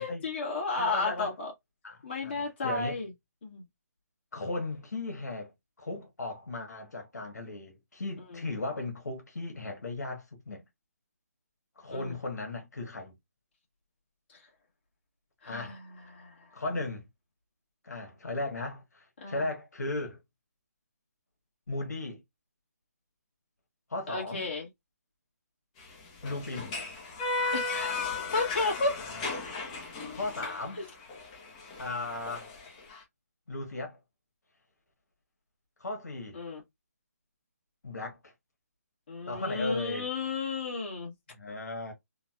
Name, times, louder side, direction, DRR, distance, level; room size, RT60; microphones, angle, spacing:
voice 1, 0.0-1.5 2.0-3.1 3.4-3.6 8.3-8.4 11.9-12.1 14.3-14.4 15.4-16.4 19.2-19.5 24.1-24.7 27.5-29.0 30.8-30.9 36.3-36.6 39.1-41.1, left 3 dB, 40° left, 1.7 m, -33 dB
voice 2, 0.8-1.3 1.8-3.0 4.3-5.5 5.8-10.6 11.8-13.1 15.4-15.8 16.5-17.0 17.8-20.2 21.7-22.2 23.9-24.5 26.2-26.7 29.1-29.4 30.1-30.8 31.8-32.5 33.5-34.0 35.8-36.4 37.8-38.3 39.3-40.1 41.3-41.9, left 2 dB, 80° left, 1.4 m, -36 dB
sound 1, 25.8-33.0, left 3 dB, 20° left, 0.9 m, -36 dB
3.9 x 2.4 x 2.3 m
hypercardioid pair, 160°, 9 cm